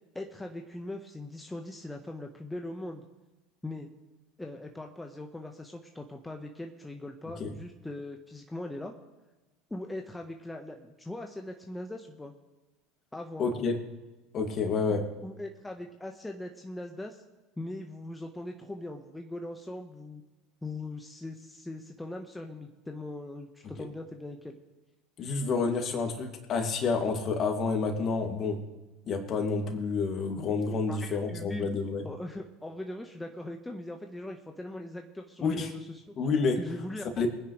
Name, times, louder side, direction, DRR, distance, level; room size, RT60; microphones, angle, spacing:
voice 1, 0.1-3.0 3.6-3.9 4.4-8.9 9.7-12.3 13.1-13.6 15.2-17.2 17.6-20.2 20.6-24.6 30.9-31.7 32.0-36.0 36.6-37.0, left 1 dB, 10° left, 3 dB, 1.2 m, -40 dB
voice 2, 13.4-13.8 14.3-15.0 25.2-28.6 29.1-32.0 35.4-35.7 36.2-36.6 37.2-37.3, left 4 dB, 45° left, 4 dB, 2.4 m, -29 dB
23.0 x 9.9 x 3.3 m, 1.1 s
hypercardioid pair, 80°, 0 cm